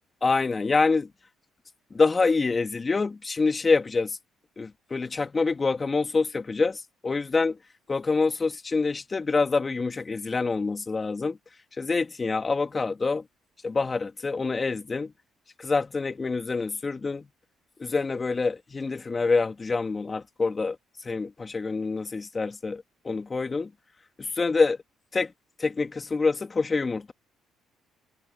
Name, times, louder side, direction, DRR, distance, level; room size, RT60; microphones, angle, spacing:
voice 1, 0.2-1.1 1.9-4.2 4.6-7.6 7.9-11.4 11.8-13.3 13.6-15.1 15.6-17.3 17.8-20.8 21.0-23.7 24.2-24.8 25.1-25.3 25.6-27.1, left 4 dB, 30° left, 2.7 m, -26 dB
cardioid pair, 80°, 0 cm